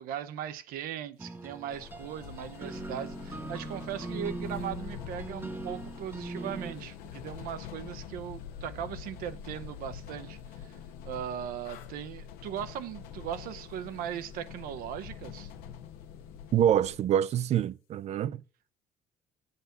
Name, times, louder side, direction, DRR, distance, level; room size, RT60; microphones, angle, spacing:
voice 1, 0.0-10.7 11.0-15.5, right 10 dB, 75° right, 0.8 m, -38 dB
sound 1, 1.2-6.7, right 2 dB, 15° right, 0.9 m, -40 dB
sound 2, 1.7-17.0, left 8 dB, 85° left, 0.9 m, -45 dB
voice 2, 16.5-18.4, right 10 dB, 50° right, 0.4 m, -26 dB
8.0 x 4.1 x 6.7 m
cardioid pair, 105°, 15 cm